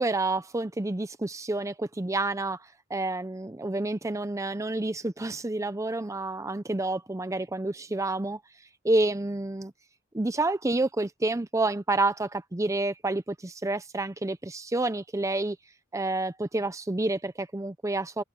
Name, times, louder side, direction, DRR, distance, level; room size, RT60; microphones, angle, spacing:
voice 1, 0.0-8.4 8.8-9.7 10.1-15.6 15.9-18.2, right 2 dB, 15° right, 0.6 m, -29 dB
head